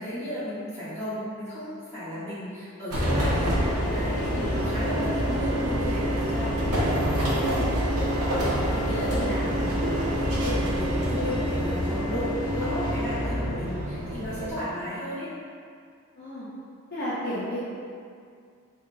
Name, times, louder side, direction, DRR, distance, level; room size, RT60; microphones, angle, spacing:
voice 1, 0.0-15.3, equal, 10° left, -15 dB, 1.4 m, -34 dB
sound 1, 2.9-14.5, equal, 85° right, 0.8 m, -26 dB
voice 2, 9.1-9.7 16.2-16.5 16.9-17.6, left 1 dB, 45° left, -11 dB, 0.6 m, -34 dB
3.7 x 3.5 x 2.2 m, 2.3 s
head